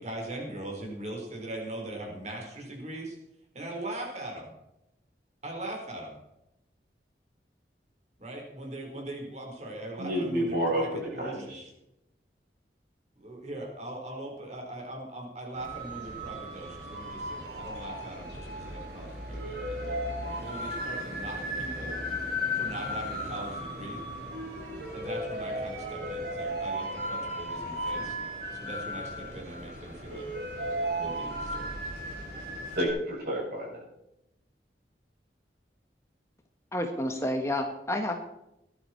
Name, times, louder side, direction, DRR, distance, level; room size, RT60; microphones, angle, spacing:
voice 1, 0.0-3.2 3.5-4.5 5.4-6.2 8.2-11.7 13.2-20.0 20.4-22.0 22.5-24.0 24.9-28.2 28.5-30.3 30.9-31.7, right 1 dB, 40° right, 0 dB, 4.5 m, -40 dB
voice 2, 10.0-11.6 32.8-33.8, equal, 55° right, -3 dB, 7.5 m, -30 dB
sound 1, 15.5-32.9, equal, 70° right, 5.1 m, -35 dB
voice 3, 36.7-38.2, left 1 dB, 15° left, 4 dB, 1.3 m, -30 dB
19.0 x 11.5 x 4.5 m, 0.87 s
head